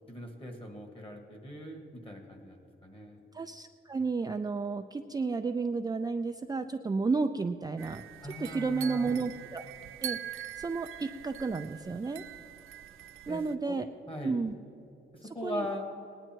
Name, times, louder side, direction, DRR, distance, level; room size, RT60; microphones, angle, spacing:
voice 1, 0.1-3.2 8.2-9.2 13.3-13.8 14.1-14.4 15.1-15.8, left 1 dB, 25° left, 3 dB, 2.0 m, -40 dB
voice 2, 3.3-8.0 8.4-9.7 10.0-10.2 10.6-12.2 13.3-13.9 14.2-14.5 15.4-15.7, right 4 dB, 20° right, 6 dB, 0.4 m, -32 dB
sound 1, 7.8-13.5, right 11 dB, 85° right, 0.5 m, -43 dB
19.0 x 10.0 x 4.6 m, 2.8 s
wide cardioid pair, 115°, 21 cm